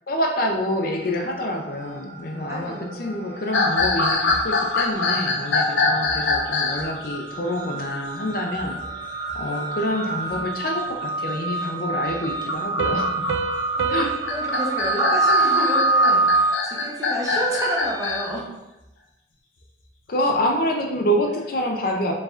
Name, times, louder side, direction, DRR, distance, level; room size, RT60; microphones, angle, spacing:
voice 1, 0.1-8.8 9.3-13.1 13.9-14.1 20.1-22.1, equal, 50° left, 2 dB, 0.5 m, -26 dB
sound 1, 0.7-1.3 1.6-18.2, right 3 dB, 15° left, 0.7 m, -27 dB
voice 2, 2.5-3.1 13.8-18.6, right 1 dB, 15° right, -3 dB, 0.8 m, -30 dB
sound 2, 3.5-6.8 8.3-8.9 9.3-9.4 10.1-10.4 12.1-18.3, left 3 dB, 90° left, 0.6 m, -24 dB
Piano, 12.8-16.2, right 5 dB, 80° right, 0.3 m, -32 dB
4.8 x 3.1 x 2.5 m, 0.97 s
head